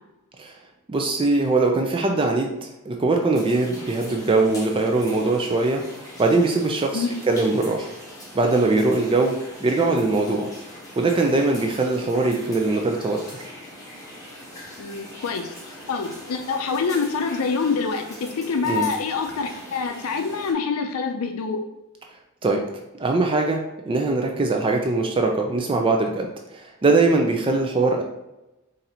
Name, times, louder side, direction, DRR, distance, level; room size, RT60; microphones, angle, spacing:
voice 1, 0.9-2.5 2.9-5.8 6.2-7.9 8.3-9.4 9.6-10.5 11.0-13.5 18.6-18.9 22.4-22.6 23.0-23.6 23.9-26.3 26.5-28.0, right 3 dB, 25° right, 2 dB, 0.4 m, -21 dB
sound 1, 3.3-20.5, equal, 15° left, 1.4 m, -41 dB
voice 2, 14.8-21.6, left 5 dB, 80° left, 5 dB, 0.4 m, -26 dB
4.2 x 2.6 x 4.1 m, 0.97 s
head